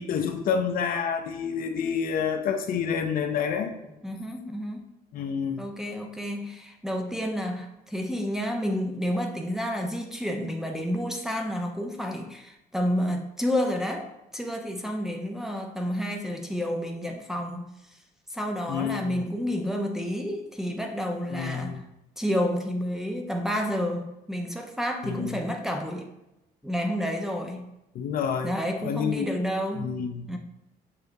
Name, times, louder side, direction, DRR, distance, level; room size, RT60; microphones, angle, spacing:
voice 1, 0.0-3.7 5.1-5.7 18.7-19.2 21.3-21.8 25.0-25.4 27.9-28.5 28.8-29.4 29.8-30.4, left 7 dB, 60° left, 6 dB, 0.5 m, -28 dB
voice 2, 4.0-4.8 5.6-14.1 14.3-17.7 18.3-21.8 22.2-26.1 26.6-27.6 28.4-29.9 30.3-30.4, equal, 5° right, 2 dB, 0.5 m, -30 dB
6.6 x 2.7 x 2.3 m, 0.89 s
cardioid pair, 110°, 17 cm